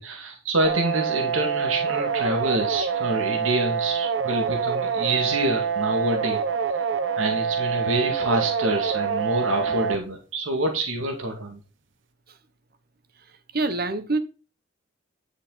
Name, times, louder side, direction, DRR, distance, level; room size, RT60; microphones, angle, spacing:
voice 1, 0.0-6.4 7.2-11.6, right 1 dB, 85° right, 3 dB, 2.4 m, -27 dB
sound 1, 0.6-10.0, right 6 dB, 65° right, 1.0 m, -26 dB
voice 2, 13.3-14.2, right 3 dB, 50° right, 11 dB, 1.3 m, -26 dB
10.5 x 6.4 x 4.0 m, 0.34 s
head